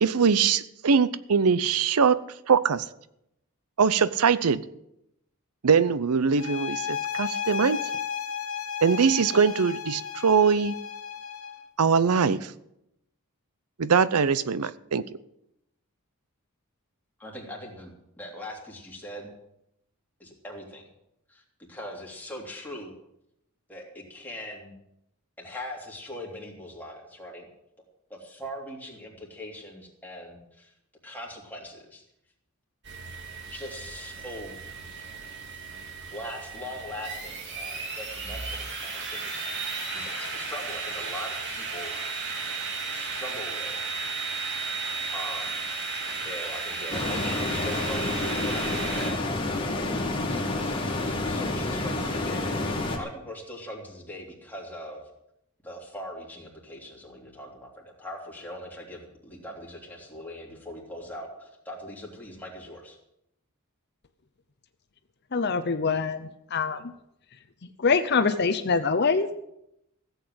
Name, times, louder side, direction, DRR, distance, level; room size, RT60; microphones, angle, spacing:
voice 1, 0.0-2.2 2.5-2.8 3.8-4.6 5.6-7.8 8.8-10.8 11.8-12.5 13.8-15.1, right 6 dB, 85° right, 0.6 m, -22 dB
sound 1, 6.4-11.7, left 8 dB, 65° left, 1.0 m, -34 dB
voice 2, 17.2-19.3 20.2-20.8 21.3-21.4 21.7-22.9 23.7-24.7 25.4-27.5 28.1-30.7 31.0-32.0 33.5-34.7 35.5-35.6 36.1-42.0 42.3-42.4 42.9-44.0 45.1-45.6 46.0-49.2 50.0-55.1 55.6-63.0, left 1 dB, 10° left, 3.2 m, -41 dB
sound 2, 32.8-49.1, right 4 dB, 50° right, 2.7 m, -34 dB
sound 3, 46.9-53.0, left 2 dB, 25° left, 2.2 m, -29 dB
voice 3, 65.3-66.8 67.8-69.3, left 4 dB, 50° left, 0.7 m, -24 dB
15.5 x 8.1 x 7.9 m
head